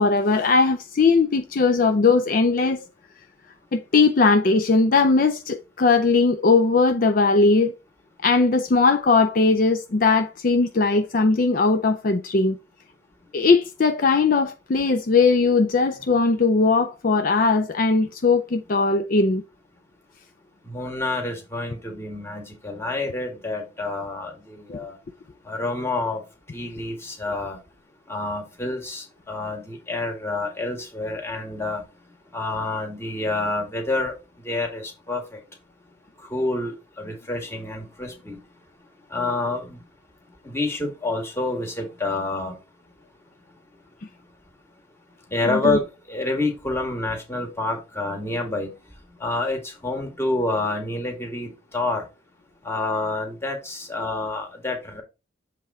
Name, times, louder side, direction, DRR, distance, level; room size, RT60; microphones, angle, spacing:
voice 1, 0.0-2.8 3.7-7.8 8.2-12.6 13.3-19.4 45.5-45.8, left 4 dB, 45° left, 0.4 m, -19 dB
voice 2, 20.6-25.0 25.5-26.2 26.5-27.6 28.1-31.8 32.3-34.1 34.4-35.4 36.2-38.4 39.1-39.8 40.4-42.6 45.3-48.7 49.2-52.0 52.6-55.0, left 2 dB, 15° left, 1.8 m, -28 dB
7.5 x 3.6 x 4.2 m
head